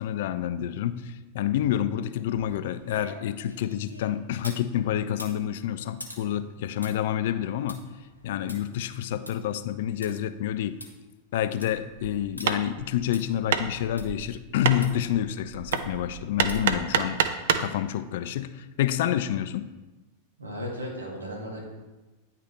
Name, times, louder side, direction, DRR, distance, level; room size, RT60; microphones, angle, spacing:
voice 1, 0.0-7.8 8.2-10.8 11.3-17.2 17.6-19.7, left 11 dB, 55° left, 11 dB, 0.3 m, -28 dB
sound 1, 2.2-4.7 5.1-10.1 10.5-10.6 10.8-10.9 11.4-11.8 12.4-12.5 13.1-13.2 14.0-14.1 14.8-14.9 15.7-16.0 16.5-16.8 17.2-17.3, left 1 dB, 85° left, 0.8 m, -45 dB
Hammer, 11.9-17.8, right 7 dB, 60° right, 0.4 m, -29 dB
voice 2, 20.4-21.6, equal, 75° right, -3 dB, 1.8 m, -36 dB
9.5 x 3.3 x 3.1 m, 1.1 s
figure-of-eight pair, 90°, 0 cm